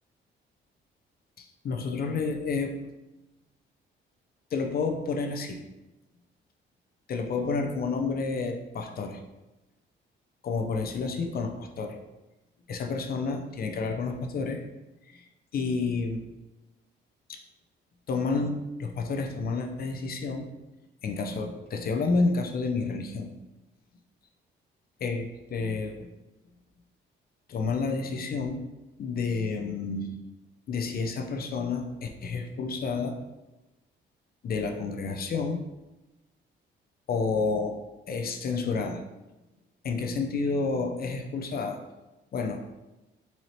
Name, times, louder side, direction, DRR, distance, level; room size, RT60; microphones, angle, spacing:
voice 1, 1.4-2.7 4.5-5.6 7.1-9.2 10.4-12.0 12.7-14.6 15.1-15.2 15.5-16.2 17.3-17.4 18.1-20.5 21.0-23.3 25.0-26.1 27.5-28.6 29.0-30.2 30.7-33.2 34.4-35.7 37.1-37.8 38.1-39.0 39.8-41.8 42.3-42.6, left 4 dB, 50° left, 4 dB, 0.5 m, -30 dB
4.2 x 2.7 x 3.1 m, 1.0 s
cardioid pair, 90°, 20 cm